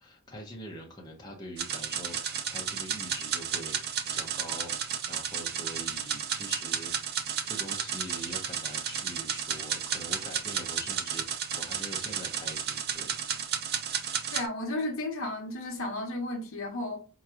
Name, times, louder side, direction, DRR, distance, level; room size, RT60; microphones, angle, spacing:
voice 1, 0.0-6.9 7.4-13.6, equal, 20° left, 0.7 m, -44 dB
sound 1, 1.6-14.5, right 8 dB, 45° right, 0.4 m, -33 dB
voice 2, 14.3-17.0, left 1 dB, 60° left, 1.0 m, -33 dB
4.5 x 3.0 x 2.5 m
head